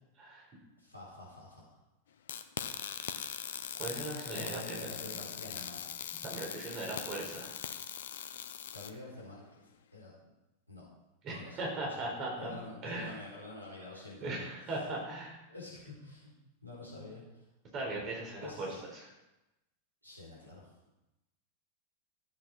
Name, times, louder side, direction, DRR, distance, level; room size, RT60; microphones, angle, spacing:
voice 1, 0.8-1.8 4.3-6.1 8.7-9.7 9.9-10.1 10.7-10.8 11.3-11.6 11.8-12.1 12.4-14.5 15.5-16.3 16.6-17.4 18.4-18.8 20.0-20.7, left 2 dB, 90° right, -5 dB, 4.2 m, -48 dB
sound 1, 2.3-8.9, left 9 dB, 60° left, 0.7 m, -41 dB
voice 2, 3.8-5.2 5.5-5.6 6.2-7.6 11.2-12.5 12.8-13.2 14.2-15.4 17.7-19.1, right 2 dB, 35° right, -2 dB, 4.7 m, -39 dB
14.5 x 8.3 x 4.6 m, 0.98 s
figure-of-eight pair, 90°, 0 cm